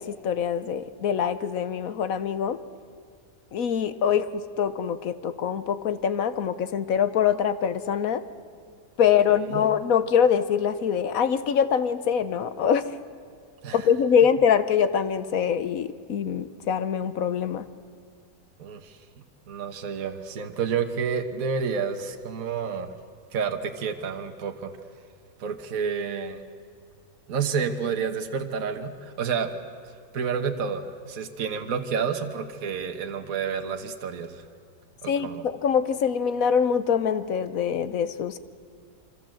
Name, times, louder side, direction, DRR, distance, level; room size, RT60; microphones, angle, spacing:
voice 1, 0.0-2.6 3.5-8.2 9.0-12.9 13.7-17.7 35.1-38.4, left 7 dB, 60° left, 13 dB, 1.2 m, -24 dB
voice 2, 9.3-9.6 13.6-13.9 18.6-19.0 19.5-22.9 23.3-24.7 25.4-26.4 27.3-29.5 30.1-34.4 35.0-35.4, right 6 dB, 55° right, 6 dB, 1.6 m, -29 dB
26.5 x 25.0 x 7.7 m, 2.2 s
omnidirectional pair, 1.8 m